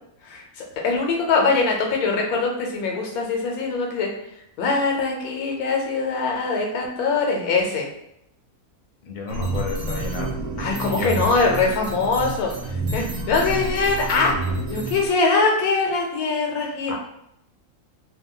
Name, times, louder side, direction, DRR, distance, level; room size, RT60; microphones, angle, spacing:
voice 1, 0.2-4.1 4.6-7.9 10.6-12.5 12.9-14.3 14.7-16.9, left 4 dB, 85° left, 0 dB, 1.2 m, -22 dB
voice 2, 9.1-10.3 10.8-11.1 16.9-17.0, left 4 dB, 45° left, -1 dB, 0.6 m, -31 dB
sound 1, 9.3-15.1, right 2 dB, 50° right, 0.7 m, -29 dB
2.8 x 2.3 x 3.6 m, 0.77 s
omnidirectional pair, 1.5 m